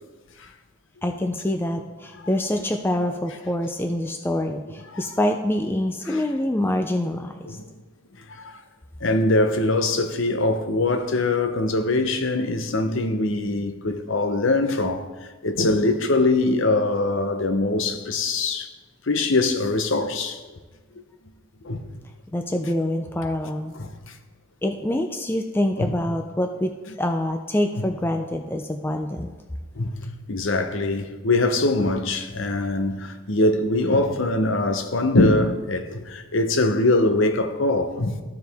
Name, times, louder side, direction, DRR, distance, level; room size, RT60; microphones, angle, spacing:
voice 1, 1.0-7.6 22.3-23.7 24.6-26.7 27.0-29.3, left 1 dB, 10° left, 0.3 m, -25 dB
voice 2, 8.3-8.6 9.0-18.7 19.1-20.4 21.6-21.9 23.7-24.1 25.8-25.9 27.8-27.9 29.7-38.2, left 2 dB, 60° left, 0.7 m, -23 dB
14.0 x 4.8 x 3.4 m
head